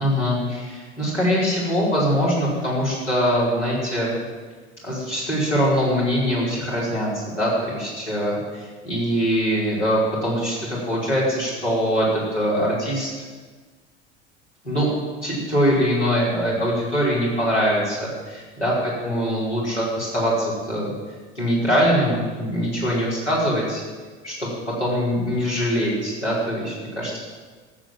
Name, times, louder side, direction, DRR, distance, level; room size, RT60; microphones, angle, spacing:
voice 1, 0.0-4.1 4.8-13.1 14.6-14.9 15.2-20.9 21.3-23.8 24.2-24.5 24.8-27.2, equal, 90° left, -6 dB, 4.6 m, -23 dB
14.0 x 8.2 x 7.4 m, 1.4 s
figure-of-eight pair, 75°, 34 cm